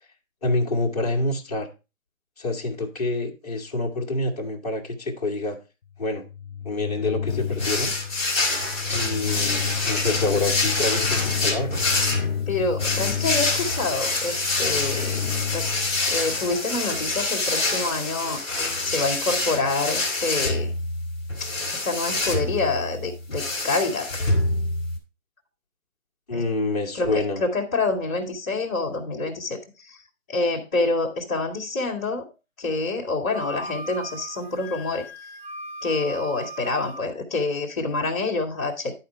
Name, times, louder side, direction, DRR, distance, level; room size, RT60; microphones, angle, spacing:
voice 1, 0.4-1.7 2.4-5.6 6.0-6.2 6.6-7.9 8.9-11.9 26.3-27.4, left 2 dB, 30° left, -1 dB, 1.3 m, -27 dB
sound 1, 6.0-16.6, left 8 dB, 60° left, 0.5 m, -31 dB
sound 2, 7.6-25.0, left 2 dB, 10° right, 1.4 m, -26 dB
voice 2, 12.5-15.2 15.5-15.7 16.1-18.4 18.8-20.7 21.4-24.1 26.3-26.4 27.0-29.6 29.8-30.0 30.3-32.2 32.6-35.1 35.8-38.9, left 3 dB, 10° left, -9 dB, 1.4 m, -27 dB
Wind instrument woodwind instrument, 33.3-37.1, right 1 dB, 35° right, 2.1 m, -38 dB
11.0 x 4.3 x 4.7 m, 0.29 s
hypercardioid pair, 180°, 41 cm